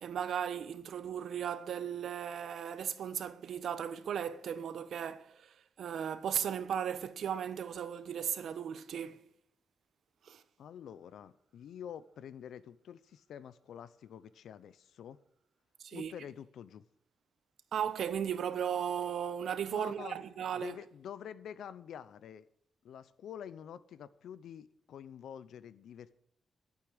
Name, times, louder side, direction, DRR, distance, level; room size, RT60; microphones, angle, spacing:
voice 1, 0.0-9.2 10.2-10.4 15.8-16.1 17.7-20.8, right 8 dB, 75° right, 1.1 m, -36 dB
voice 2, 10.6-15.2 15.9-16.9 19.7-20.2 20.5-22.5 22.8-26.2, left 9 dB, 85° left, 0.8 m, -47 dB
12.0 x 8.6 x 7.8 m
cardioid pair, 105°, 0 cm